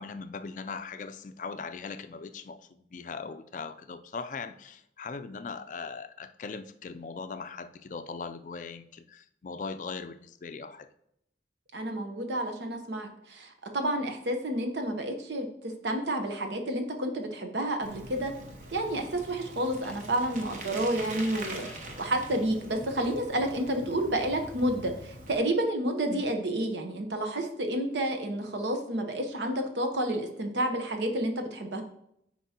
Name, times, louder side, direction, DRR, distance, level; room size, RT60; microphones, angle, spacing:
voice 1, 0.0-10.9 26.1-26.3, left 4 dB, 45° left, 10 dB, 0.4 m, -40 dB
voice 2, 11.7-18.3 18.7-21.7 22.0-31.8, right 1 dB, 80° right, 5 dB, 1.0 m, -30 dB
Bicycle, 17.8-25.4, right 1 dB, 45° right, 0.9 m, -43 dB
sound 1, 19.7-20.0 21.1-21.9 22.8-23.1 25.6-25.7 25.9-26.0 27.1-27.2, left 1 dB, 5° left, 1.2 m, -51 dB
9.3 x 4.6 x 2.9 m, 0.76 s
head